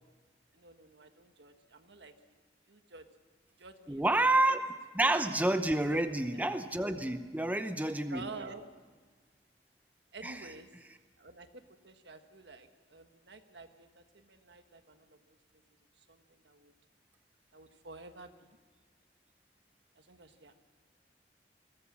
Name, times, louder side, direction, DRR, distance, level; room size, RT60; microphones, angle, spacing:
voice 1, 0.5-2.4 2.7-3.0 3.6-4.2 4.5-4.6 5.9-6.4 8.1-8.6 10.1-10.7 11.2-15.2 16.0-16.7 17.5-18.5 20.0-20.6, right 3 dB, 75° right, 7 dB, 1.4 m, -50 dB
voice 2, 3.9-4.6 4.9-8.2 10.2-10.4, right 2 dB, 10° right, 8 dB, 0.8 m, -29 dB
21.5 x 16.5 x 7.5 m, 1.5 s
head